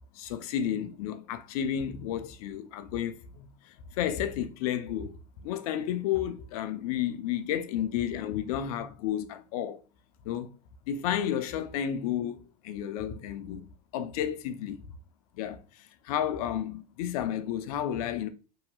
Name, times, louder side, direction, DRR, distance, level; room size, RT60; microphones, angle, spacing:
voice 1, 0.1-5.1 5.4-9.8 10.3-10.5 10.9-13.7 13.9-14.8 15.4-18.3, left 10 dB, 75° left, 0.4 m, -32 dB
2.7 x 2.7 x 2.2 m
hypercardioid pair, 85°, 19 cm